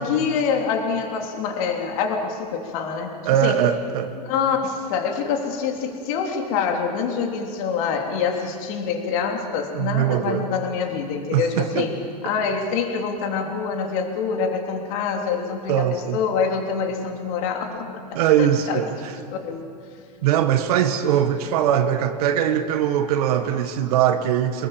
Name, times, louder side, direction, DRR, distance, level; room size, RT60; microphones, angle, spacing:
voice 1, 0.0-3.1 3.4-3.6 4.2-11.9 12.2-18.8 19.3-19.7, left 6 dB, 55° left, 3 dB, 3.4 m, -25 dB
voice 2, 3.2-4.1 9.7-10.5 11.3-11.9 15.7-16.2 18.1-19.1 20.2-24.7, right 10 dB, 65° right, 7 dB, 1.7 m, -21 dB
25.0 x 21.5 x 7.4 m, 2.3 s
hypercardioid pair, 125°, 21 cm